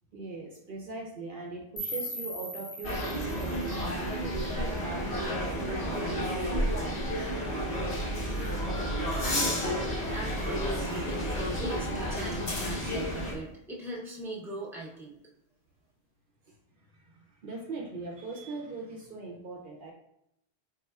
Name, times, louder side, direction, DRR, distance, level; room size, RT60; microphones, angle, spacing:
voice 1, 0.1-7.0 16.5-19.9, right 3 dB, 60° right, 0 dB, 0.7 m, -41 dB
sound 1, 1.8-4.8, equal, 60° left, 1.1 m, -40 dB
sound 2, 2.8-13.3, equal, 85° left, 1.3 m, -31 dB
voice 2, 9.2-15.1, equal, 5° right, -5 dB, 0.7 m, -38 dB
4.3 x 3.5 x 2.3 m, 0.80 s
omnidirectional pair, 1.1 m